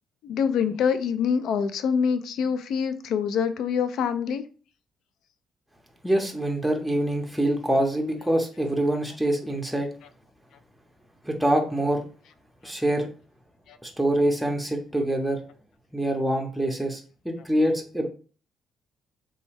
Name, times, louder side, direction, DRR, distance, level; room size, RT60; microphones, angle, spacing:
voice 1, 0.2-4.4 13.7-13.8, left 7 dB, 80° left, 11 dB, 0.3 m, -25 dB
voice 2, 6.0-9.9 11.2-12.0 12.6-13.1 13.8-15.4 15.9-18.1, right 1 dB, ahead, 1 dB, 0.6 m, -25 dB
3.1 x 2.2 x 3.2 m, 0.39 s
cardioid pair, 90°, 0 cm